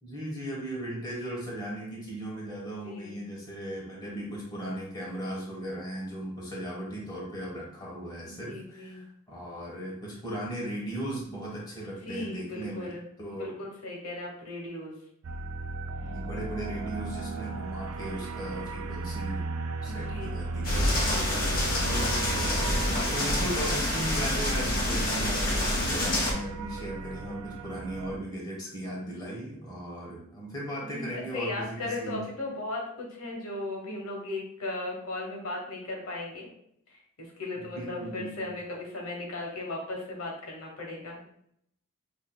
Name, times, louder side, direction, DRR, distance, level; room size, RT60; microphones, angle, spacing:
voice 1, 0.0-12.9 13.2-13.5 16.0-19.5 19.8-20.9 21.9-22.3 23.1-32.3 37.6-38.6, right 1 dB, 20° left, -4 dB, 1.1 m, -37 dB
voice 2, 2.8-3.2 8.2-9.0 12.0-13.0 13.3-14.9 19.9-20.4 21.1-21.7 30.8-36.5 36.9-41.2, left 2 dB, 75° left, 0 dB, 1.1 m, -37 dB
sound 1, 15.2-28.2, right 3 dB, 85° right, 0.4 m, -36 dB
sound 2, 20.6-26.3, left 1 dB, 40° left, 0.9 m, -27 dB
5.7 x 2.7 x 2.2 m, 0.72 s
head